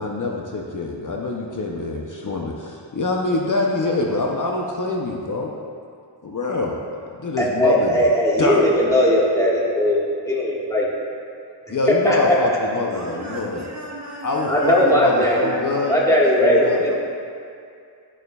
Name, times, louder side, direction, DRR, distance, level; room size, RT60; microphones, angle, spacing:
voice 1, 0.0-5.5 6.2-6.8 7.2-8.0 8.4-8.7 9.0-9.3 11.7-13.7 14.2-15.9 16.4-16.8, left 3 dB, 40° left, -1 dB, 0.7 m, -25 dB
voice 2, 7.4-10.0 10.2-10.8 12.0-12.2 14.5-15.5 15.9-17.0, left 1 dB, 5° left, -6 dB, 1.6 m, -18 dB
voice 3, 12.9-17.0, right 2 dB, 35° right, -2 dB, 0.9 m, -34 dB
11.0 x 6.7 x 2.4 m, 2.4 s
wide cardioid pair, 85°, 46 cm